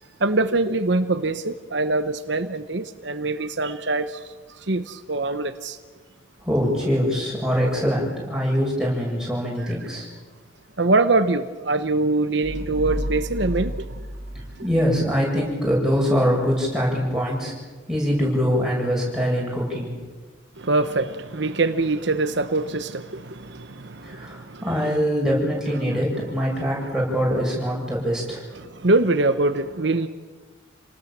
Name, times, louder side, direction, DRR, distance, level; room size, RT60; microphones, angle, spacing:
voice 1, 0.2-5.8 10.8-14.1 14.6-14.7 20.6-24.6 25.9-26.0 28.6-30.1, right 2 dB, 65° right, 1.0 m, -24 dB
voice 2, 6.4-10.1 14.3-17.5 17.9-19.9 24.0-28.4, equal, 5° right, 7.4 m, -23 dB
sound 1, 12.4-15.1, equal, 20° right, 1.5 m, -31 dB
29.0 x 19.5 x 7.4 m
head